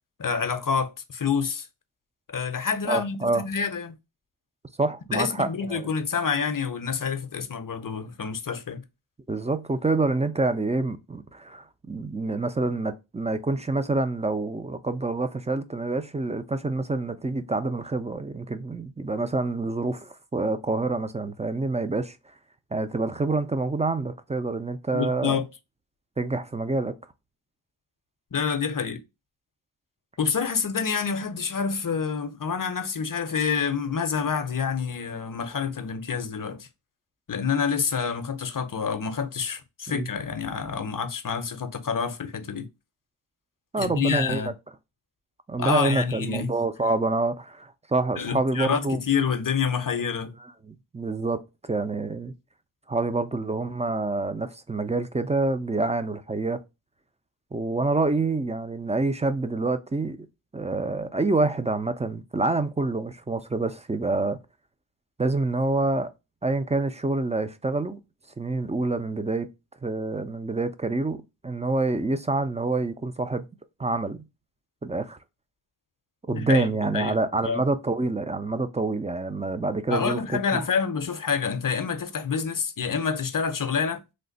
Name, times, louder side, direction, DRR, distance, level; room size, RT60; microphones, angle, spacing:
voice 1, 0.2-1.7 2.3-4.0 5.1-8.8 24.9-25.5 28.3-29.0 30.2-36.7 37.3-42.7 43.8-44.5 45.6-46.5 48.2-50.3 76.3-77.2 77.4-77.6 79.9-84.0, left 6 dB, 45° left, 0.6 m, -27 dB
voice 2, 2.9-3.4 4.8-5.9 9.3-22.2 22.7-25.4 26.2-26.9 39.9-40.1 43.7-44.5 45.5-49.0 50.7-52.3 52.9-56.6 57.5-60.3 60.5-64.4 65.2-66.1 66.4-68.0 68.4-69.5 69.8-73.4 73.8-74.2 74.8-75.2 76.3-80.2 80.5-80.6, right 3 dB, 15° right, 0.3 m, -27 dB
3.3 x 2.0 x 3.8 m
cardioid pair, 40°, 48 cm